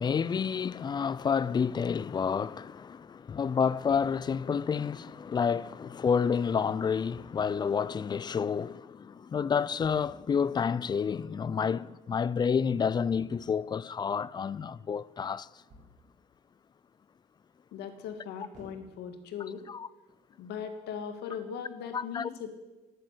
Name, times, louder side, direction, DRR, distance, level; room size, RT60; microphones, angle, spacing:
voice 1, 0.0-15.5 19.7-19.9 21.9-22.3, left 6 dB, 25° left, 0.4 m, -29 dB
head impact on bathtub, 7.1-7.8 9.8-10.5 13.1-14.0 15.7-16.3 18.5-19.6, equal, 50° right, 6.0 m, -55 dB
voice 2, 17.7-19.6 20.4-22.5, left 7 dB, 80° left, 1.7 m, -39 dB
11.5 x 8.9 x 8.2 m
cardioid pair, 110°, 17 cm